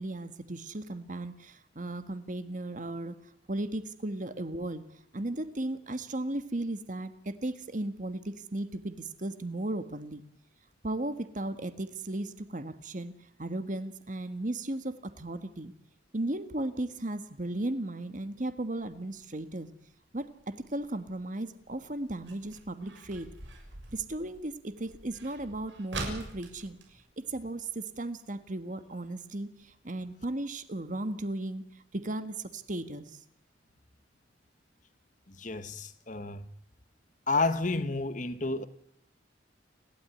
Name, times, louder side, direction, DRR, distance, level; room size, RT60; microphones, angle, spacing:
voice 1, 0.0-3.2 3.5-4.9 5.1-10.2 10.8-13.1 13.4-15.7 16.1-19.7 20.1-23.3 23.9-33.2, right 1 dB, 45° right, 1.6 m, -36 dB
sound 1, 18.8-28.1 28.4-28.5 28.7-29.1 29.6-29.7 30.2-30.3 30.6-30.7 31.1-31.2, right 2 dB, 85° right, 6.5 m, -45 dB
voice 2, 35.4-36.4 37.3-38.7, left 3 dB, 45° left, 1.4 m, -30 dB
29.5 x 12.5 x 9.8 m
head